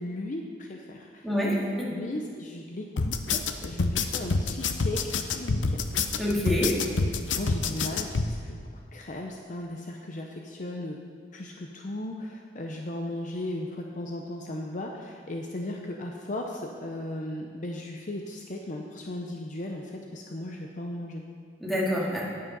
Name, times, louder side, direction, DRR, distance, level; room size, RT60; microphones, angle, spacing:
voice 1, 0.0-1.3 1.9-5.9 7.2-8.6 8.9-11.0 11.3-21.2, left 1 dB, 45° left, 1 dB, 0.6 m, -36 dB
voice 2, 1.2-1.9 6.2-6.8 21.6-22.2, equal, ahead, -7 dB, 2.2 m, -26 dB
sound 1, 3.0-8.3, left 4 dB, 80° left, 0.6 m, -27 dB
9.4 x 8.5 x 5.4 m, 2.1 s
head